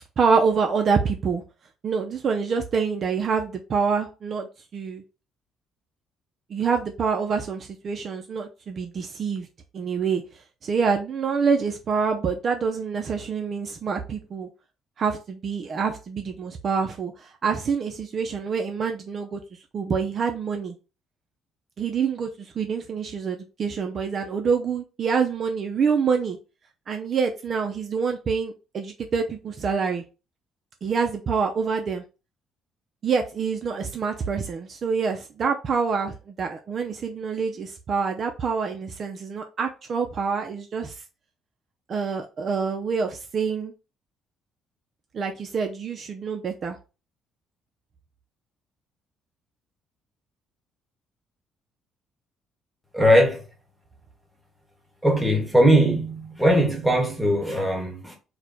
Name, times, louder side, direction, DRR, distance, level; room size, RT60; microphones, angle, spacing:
voice 1, 0.2-1.4 1.8-5.0 6.5-9.5 9.7-10.2 10.6-14.5 15.0-19.4 19.7-20.8 21.8-26.4 26.9-30.0 30.8-32.0 33.0-41.0 41.9-43.7 45.1-46.8, right 5 dB, 40° right, 0.6 m, -26 dB
voice 2, 52.9-53.4 55.0-58.2, equal, ahead, 1.3 m, -20 dB
4.7 x 2.2 x 4.8 m
cardioid pair, 145°, 0 cm